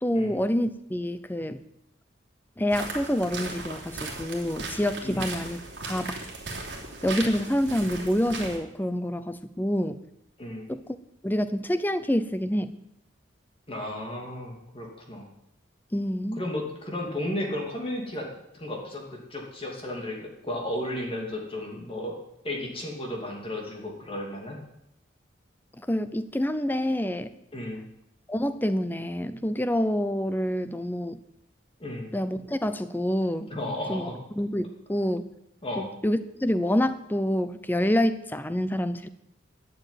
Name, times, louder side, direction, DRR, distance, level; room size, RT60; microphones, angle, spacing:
voice 1, 0.0-1.6 2.6-6.2 7.0-10.0 10.7-10.8 11.2-12.8 15.9-16.4 25.8-27.3 28.3-31.2 32.1-33.5 33.9-34.1 34.4-35.3 36.0-39.1, equal, 10° left, 12 dB, 0.6 m, -27 dB
sound 1, 2.7-8.6, right 3 dB, 60° right, 2.9 m, -37 dB
voice 2, 13.7-15.3 16.4-18.3 18.5-22.2 22.4-24.6 27.5-27.8 31.8-32.1 33.5-34.2 35.6-35.9, left 1 dB, 30° left, 0 dB, 2.7 m, -34 dB
12.0 x 7.0 x 9.1 m, 0.81 s
head